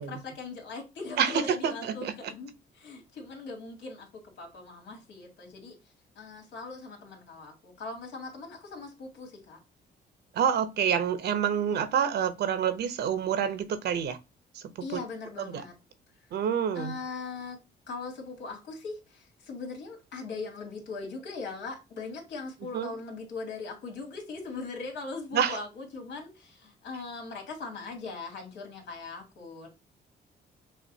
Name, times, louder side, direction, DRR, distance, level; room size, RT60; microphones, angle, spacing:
voice 1, 0.0-5.8 6.2-9.6 14.8-15.7 16.8-17.6 17.9-29.7, left 4 dB, 85° left, 2.2 m, -40 dB
voice 2, 1.2-2.3 10.3-14.2 14.5-14.6 14.9-15.0 15.4-15.6 16.3-17.0 22.7-22.9 25.3-25.6, right 8 dB, 70° right, 0.8 m, -28 dB
6.4 x 2.4 x 2.7 m
cardioid pair, 115°, 18 cm